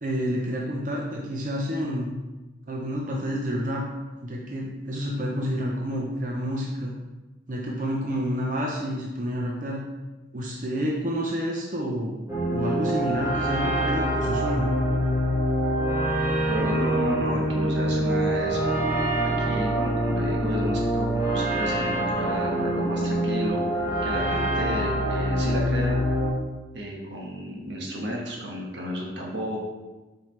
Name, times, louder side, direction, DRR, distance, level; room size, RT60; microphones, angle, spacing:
voice 1, 0.0-2.1 2.7-3.8 4.2-6.9 7.5-9.8 10.3-12.1 12.5-14.7, equal, 45° right, -2 dB, 0.7 m, -29 dB
sound 1, 12.3-26.3, right 1 dB, 15° right, 1.5 m, -25 dB
voice 2, 16.5-18.7 19.2-26.0 26.7-29.6, equal, 75° right, -2 dB, 1.4 m, -32 dB
7.7 x 5.0 x 3.2 m, 1.2 s
head